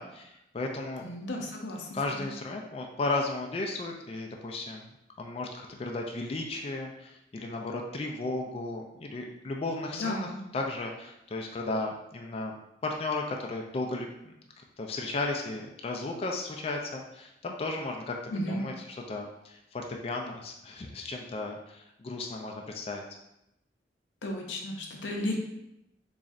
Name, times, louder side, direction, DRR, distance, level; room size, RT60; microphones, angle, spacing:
voice 1, 0.0-1.0 1.9-4.9 5.2-12.6 12.8-23.0, left 2 dB, 35° left, 1 dB, 0.3 m, -35 dB
voice 2, 1.0-1.9 2.2-2.3 9.9-10.4 18.3-18.6 24.2-25.4, left 1 dB, 85° left, 1 dB, 0.6 m, -34 dB
3.9 x 3.1 x 2.4 m, 0.85 s
head